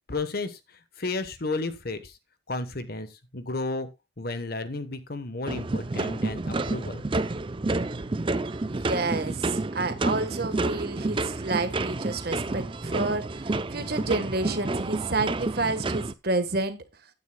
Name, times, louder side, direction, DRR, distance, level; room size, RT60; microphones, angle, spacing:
voice 1, 0.1-0.6 1.0-2.2 2.5-3.9 4.2-7.0, left 3 dB, 50° left, 11 dB, 1.1 m, -32 dB
sound 1, 5.5-16.1, right 2 dB, 25° right, 0.5 m, -29 dB
voice 2, 8.6-16.8, right 3 dB, 50° right, 9 dB, 1.4 m, -29 dB
15.5 x 9.4 x 2.3 m, 0.23 s
head